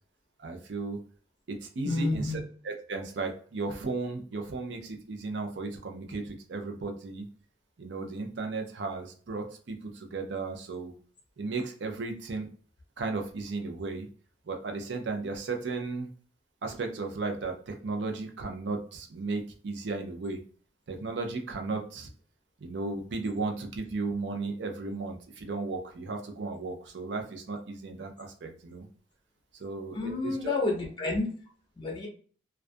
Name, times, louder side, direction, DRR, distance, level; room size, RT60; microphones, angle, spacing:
voice 1, 0.4-1.0 1.5-7.3 7.8-10.9 11.4-12.5 13.0-14.1 14.4-16.1 16.6-20.4 20.9-22.1 22.6-28.9 29.5-30.5, right 3 dB, 70° right, 3 dB, 0.5 m, -35 dB
voice 2, 1.8-2.4 29.9-31.3 31.8-32.1, left 2 dB, 25° left, 0 dB, 0.6 m, -29 dB
2.3 x 2.2 x 2.5 m, 0.43 s
head